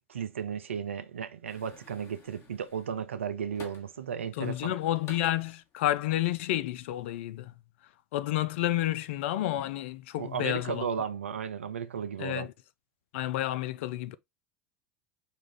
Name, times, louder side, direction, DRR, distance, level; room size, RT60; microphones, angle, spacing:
voice 1, 0.1-4.7 10.2-12.5, right 7 dB, 90° right, 0.5 m, -35 dB
sound 1, 1.5-4.0 4.4-6.6 6.9-7.2, left 5 dB, 45° left, 1.5 m, -52 dB
voice 2, 4.4-7.5 8.1-10.9 12.2-12.5 13.1-14.2, left 14 dB, 70° left, 0.4 m, -30 dB
4.9 x 2.5 x 3.2 m
hypercardioid pair, 80°, 7 cm